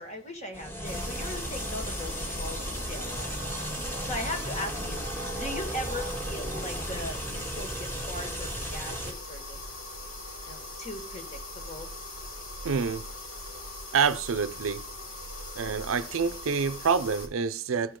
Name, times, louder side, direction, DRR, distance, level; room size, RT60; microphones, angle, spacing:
voice 1, 0.0-3.2 4.0-5.0 5.3-9.7 10.4-11.9, left 1 dB, 35° left, 2.0 m, -39 dB
sound 1, 0.5-9.1, right 1 dB, 10° left, 1.9 m, -35 dB
sound 2, 0.8-17.3, left 1 dB, 75° left, 3.0 m, -41 dB
voice 2, 12.6-13.1 13.9-14.8 15.6-18.0, right 5 dB, 85° right, 0.5 m, -27 dB
15.0 x 5.1 x 3.7 m
head